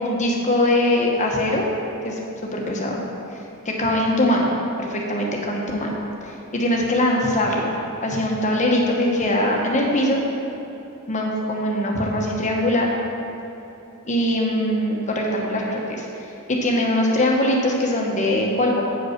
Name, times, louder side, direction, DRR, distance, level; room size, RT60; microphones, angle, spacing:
voice 1, 0.0-1.6 2.0-2.2 2.5-3.0 3.6-5.9 6.2-7.7 8.0-10.2 11.1-12.9 14.0-16.0 16.5-18.8, left 1 dB, 35° left, -1 dB, 1.2 m, -22 dB
8.7 x 5.4 x 5.9 m, 3.0 s
head